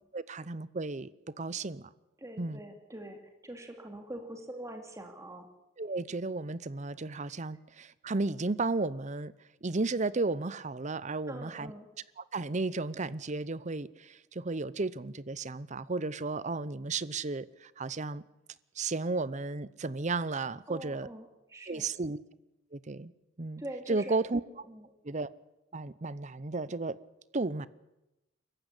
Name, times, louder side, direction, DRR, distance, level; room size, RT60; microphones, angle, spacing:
voice 1, 0.1-1.1 1.4-1.9 2.4-2.6 5.8-9.3 9.6-11.7 12.3-18.2 18.8-21.1 21.7-22.2 22.7-23.1 23.4-23.6 23.9-24.4 25.0-25.3 25.7-27.0 27.3-27.7, right 3 dB, 40° right, 18 dB, 0.7 m, -33 dB
voice 2, 2.2-5.5 11.3-11.9 20.7-21.9 23.6-24.2 24.5-24.9, right 1 dB, 15° right, 4 dB, 2.6 m, -44 dB
24.0 x 15.0 x 10.0 m, 0.96 s
head